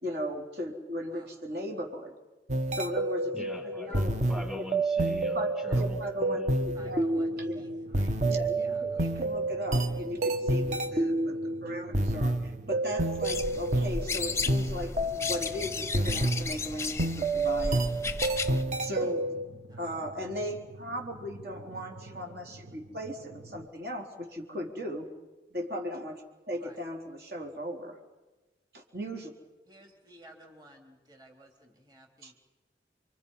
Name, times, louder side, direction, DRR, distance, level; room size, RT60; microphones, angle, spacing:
voice 1, 0.0-2.1 2.7-4.1 4.5-4.6 5.3-7.7 8.3-17.8 18.5-19.3 19.8-25.1 25.5-28.0 28.7-29.3 32.2-32.3, equal, 60° right, 1 dB, 3.9 m, -37 dB
sound 1, 2.5-16.6 17.0-19.5, right 2 dB, 40° right, 1.1 m, -29 dB
voice 2, 3.3-6.5, left 1 dB, 5° right, 1 dB, 1.7 m, -42 dB
voice 3, 6.7-9.3 19.7-19.9 26.6-26.8 29.7-32.3, right 1 dB, 25° right, 2 dB, 3.6 m, -55 dB
sound 2, 6.8-23.7, right 2 dB, 80° right, 1.4 m, -49 dB
sound 3, 13.2-18.6, left 4 dB, 15° left, 0.7 m, -34 dB
29.5 x 24.0 x 5.6 m, 1.1 s
head